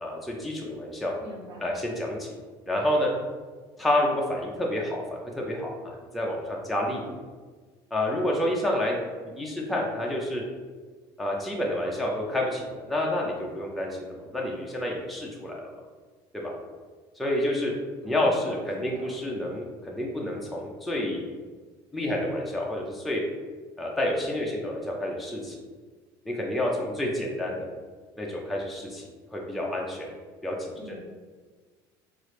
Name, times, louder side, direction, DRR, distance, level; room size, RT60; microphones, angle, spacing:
voice 1, 0.0-1.1 1.6-2.4 2.7-3.1 3.8-7.0 7.9-10.4 11.2-15.7 16.3-16.5 17.2-17.7 18.0-21.2 21.9-23.2 23.8-25.6 26.3-27.7 28.2-29.0 29.3-30.1 30.4-31.0, left 1 dB, ahead, -2 dB, 0.3 m, -29 dB
voice 2, 1.2-1.7 18.0-19.1 30.8-31.0, left 1 dB, 45° right, -3 dB, 0.8 m, -43 dB
3.0 x 2.4 x 3.1 m, 1.4 s
cardioid pair, 160°, 9 cm